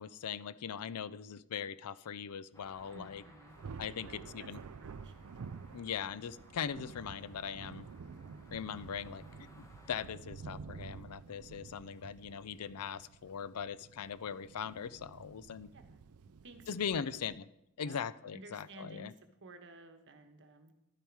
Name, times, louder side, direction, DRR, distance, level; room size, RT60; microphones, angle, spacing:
voice 1, 0.0-3.2 3.8-4.6 5.7-7.9 8.5-9.2 9.6-15.7 16.7-17.4 17.8-19.1, left 7 dB, 85° left, 17 dB, 0.5 m, -40 dB
sound 1, 2.5-10.1, left 1 dB, 15° left, 1.3 m, -60 dB
voice 2, 2.8-4.5 4.8-5.1 15.7-16.0 16.4-17.2 17.8-18.0 18.3-19.1 19.4-20.7, right 2 dB, 55° right, 7 dB, 1.2 m, -54 dB
Thunder, 3.5-17.3, right 5 dB, 75° right, 0.4 m, -50 dB
12.0 x 9.0 x 4.7 m, 0.86 s
head